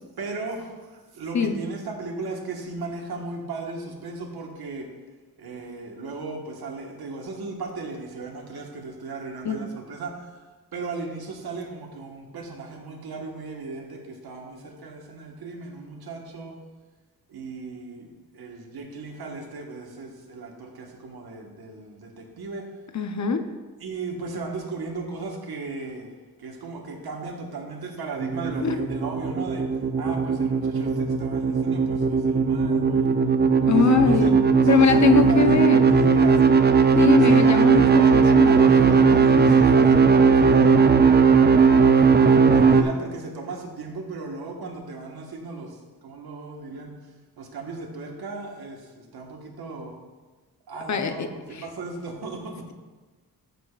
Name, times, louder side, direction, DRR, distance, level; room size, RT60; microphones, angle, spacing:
voice 1, 0.2-4.9 5.4-10.4 10.7-16.5 17.3-22.7 23.8-26.1 26.4-29.7 30.0-33.2 33.6-34.3 34.6-36.4 37.2-41.3 42.1-46.9 47.4-50.0 50.7-52.5, right 3 dB, 85° right, 1 dB, 1.5 m, -36 dB
voice 2, 22.9-23.5 28.6-28.8 33.7-34.4 34.7-35.8 36.9-38.6 50.9-51.6, left 6 dB, 50° left, 8 dB, 0.8 m, -22 dB
sound 1, 28.2-42.8, right 5 dB, 30° right, 0.5 m, -18 dB
13.5 x 6.9 x 2.4 m, 1.3 s
cardioid pair, 90°, 37 cm